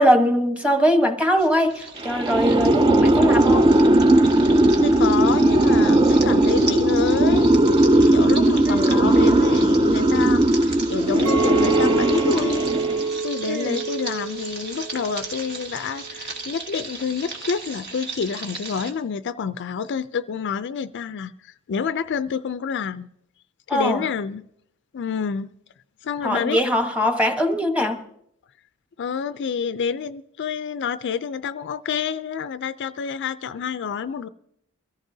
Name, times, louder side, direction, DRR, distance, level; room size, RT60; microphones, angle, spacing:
voice 1, 0.0-3.8 8.7-9.0 13.5-13.8 23.7-24.0 26.2-28.0, equal, 5° right, 1.1 m, -21 dB
sound 1, 1.4-18.9, right 3 dB, 50° right, 1.5 m, -37 dB
sound 2, 2.0-13.2, right 1 dB, 20° right, 0.4 m, -18 dB
voice 2, 4.8-23.1 23.7-24.5 24.9-25.5 26.0-26.6 29.0-34.3, left 6 dB, 55° left, 0.4 m, -28 dB
Chink clink, 11.3-15.6 15.9-16.4, right 4 dB, 80° right, 0.8 m, -28 dB
23.0 x 14.5 x 2.7 m
head